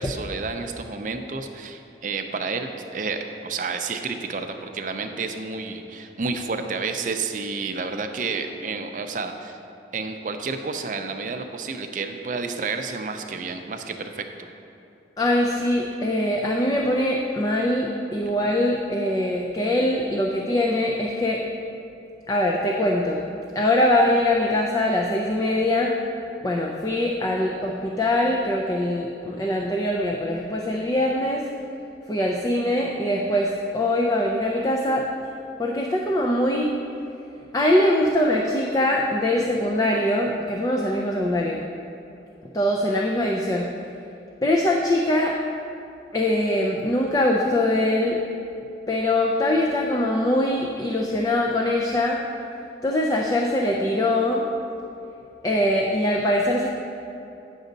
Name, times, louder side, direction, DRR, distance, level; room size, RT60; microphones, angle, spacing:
voice 1, 0.0-9.6 9.9-14.5, right 4 dB, 45° right, 5 dB, 0.5 m, -30 dB
voice 2, 15.2-21.4 22.3-23.2 23.6-25.9 26.4-31.4 32.1-35.0 35.6-36.7 37.5-41.6 42.5-43.7 44.4-45.3 46.1-48.2 48.9-52.2 52.8-54.4 55.4-56.7, left 1 dB, 20° left, -1 dB, 0.4 m, -22 dB
9.1 x 6.2 x 4.0 m, 2.9 s
head